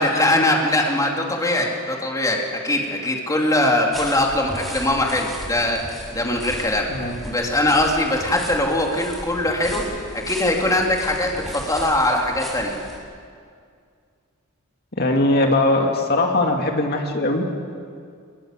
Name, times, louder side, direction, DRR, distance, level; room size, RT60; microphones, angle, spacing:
voice 1, 0.0-5.8 6.1-12.8, left 1 dB, 15° left, 0 dB, 3.3 m, -21 dB
sound 1, 3.9-13.0, equal, ahead, 7.1 m, -36 dB
voice 2, 14.9-17.5, left 2 dB, 50° left, 2 dB, 2.4 m, -20 dB
26.5 x 21.0 x 7.8 m, 2.2 s
head